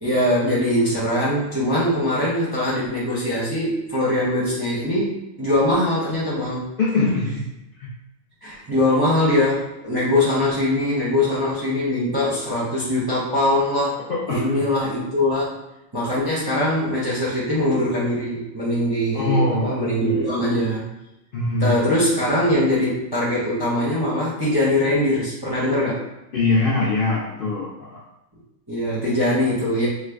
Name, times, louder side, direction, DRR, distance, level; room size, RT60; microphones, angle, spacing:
voice 1, 0.0-6.6 8.4-14.0 14.3-15.6 15.9-20.8 21.6-26.0 28.7-29.9, left 1 dB, 25° right, -8 dB, 0.5 m, -22 dB
voice 2, 6.8-7.5 7.8-7.9 14.1-14.6 19.1-20.3 21.3-21.9 26.3-28.0, left 3 dB, 60° left, -5 dB, 0.6 m, -23 dB
3.1 x 2.0 x 3.4 m, 0.93 s
omnidirectional pair, 1.4 m